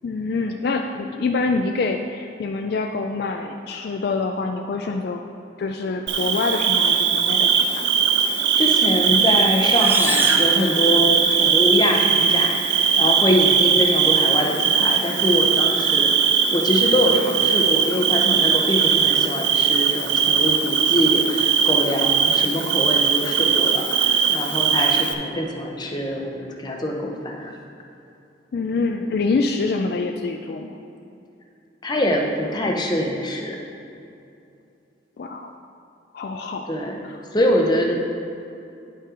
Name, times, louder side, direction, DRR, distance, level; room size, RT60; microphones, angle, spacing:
voice 1, 0.0-5.2 5.6-7.9 28.5-30.8 35.2-35.5 36.1-36.8 37.0-37.2, left 3 dB, 55° left, 3 dB, 0.3 m, -26 dB
Bird / Cricket, 6.1-25.1, right 7 dB, 60° right, 0.5 m, -19 dB
voice 2, 8.5-27.5 31.8-33.6 36.7-38.0, left 1 dB, 20° left, 1 dB, 0.7 m, -24 dB
sound 1, 9.7-11.5, right 1 dB, 10° right, 0.5 m, -27 dB
10.5 x 5.5 x 3.7 m, 2.6 s
head